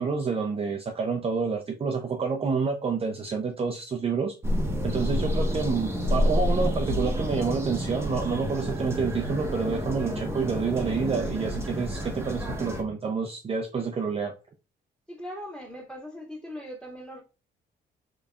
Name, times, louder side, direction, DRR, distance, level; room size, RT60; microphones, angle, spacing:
voice 1, 0.0-4.4 4.8-14.3, right 5 dB, 30° right, 0.5 m, -28 dB
sound 1, 4.4-12.8, equal, 15° right, 1.0 m, -29 dB
voice 2, 12.4-12.7 15.1-17.2, equal, 5° left, 2.0 m, -40 dB
3.9 x 3.3 x 2.3 m
cardioid pair, 90°, 20 cm